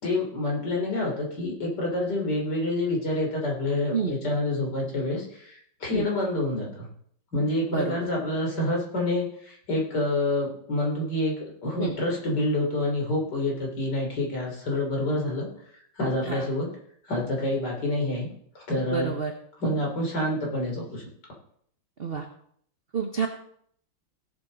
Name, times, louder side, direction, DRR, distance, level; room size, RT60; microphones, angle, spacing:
voice 1, 0.0-6.9 7.3-11.4 11.6-15.5 15.9-16.7 17.1-18.3 18.6-19.1 19.6-21.0, left 1 dB, 55° left, -1 dB, 3.8 m, -27 dB
voice 2, 7.7-8.1 11.8-12.0 16.2-16.5 18.9-19.3 22.0-22.3 22.9-23.3, right 6 dB, 45° right, 4 dB, 0.7 m, -29 dB
17.5 x 7.3 x 3.9 m, 0.65 s
omnidirectional pair, 2.3 m